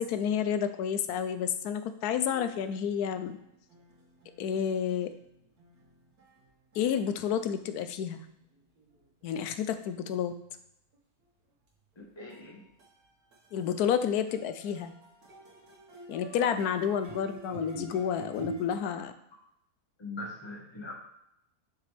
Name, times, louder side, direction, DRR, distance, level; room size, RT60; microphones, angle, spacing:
voice 1, 0.0-3.4 4.4-5.1 6.7-8.2 9.2-10.3 13.5-14.9 16.1-19.1, left 8 dB, 85° left, 10 dB, 1.1 m, -30 dB
sound 1, 2.3-10.0 10.5-10.6 10.9-11.0 11.2-11.3 11.7-12.0 12.3-18.7, right 3 dB, 80° right, 2.0 m, -48 dB
voice 2, 12.0-12.6 18.8-18.9 20.0-20.9, left 2 dB, 20° left, -2 dB, 1.4 m, -41 dB
7.3 x 6.0 x 3.3 m, 0.80 s
omnidirectional pair, 1.6 m